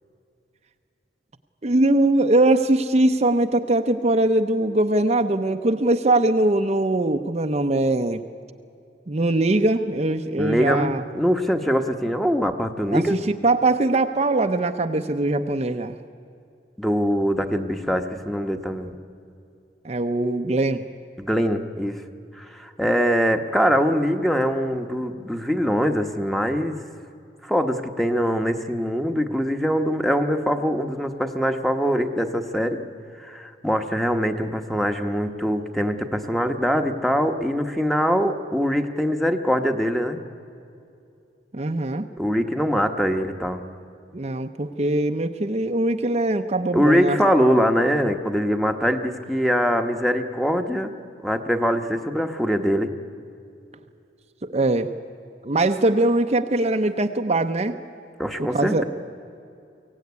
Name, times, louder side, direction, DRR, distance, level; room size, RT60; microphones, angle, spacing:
voice 1, 1.6-8.2 9.1-11.0 12.9-16.0 19.8-20.8 41.5-42.1 44.1-47.2 54.4-54.9 55.4-57.7 58.4-58.8, right 2 dB, 35° right, 6 dB, 0.7 m, -21 dB
voice 2, 10.4-13.2 16.8-18.9 21.2-22.0 22.3-26.8 27.4-32.8 33.2-40.2 42.2-43.6 46.7-50.9 51.2-52.9 58.2-58.8, equal, ahead, 6 dB, 1.1 m, -23 dB
23.5 x 16.5 x 9.5 m, 2.6 s
head